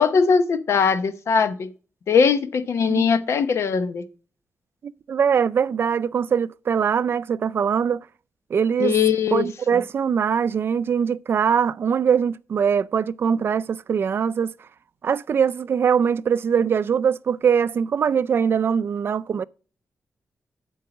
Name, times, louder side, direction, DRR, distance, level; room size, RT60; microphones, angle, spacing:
voice 1, 0.0-1.7 2.1-4.0 8.8-9.5, left 6 dB, 70° left, 0.8 m, -20 dB
voice 2, 5.1-8.0 8.5-8.9 9.3-14.5 15.0-19.4, right 7 dB, 50° right, 0.4 m, -22 dB
11.5 x 4.7 x 5.9 m
wide cardioid pair, 165°, 5 cm